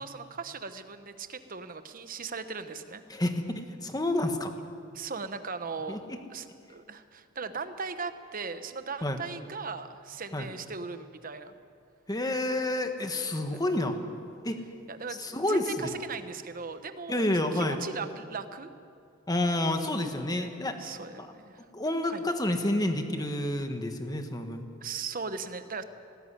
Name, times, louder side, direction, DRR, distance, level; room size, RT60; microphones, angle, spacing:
voice 1, 0.0-3.0 4.9-11.5 14.9-18.7 20.3-21.6 22.1-22.2 24.8-25.8, right 4 dB, 45° right, 10 dB, 1.0 m, -38 dB
voice 2, 3.1-4.5 5.9-6.0 9.0-9.2 10.3-10.5 12.1-14.0 14.4-14.6 15.2-15.9 17.1-17.8 19.3-20.8 21.2-21.3 21.7-24.7, left 1 dB, 20° left, 6 dB, 1.4 m, -29 dB
19.0 x 14.5 x 9.9 m, 2.4 s
head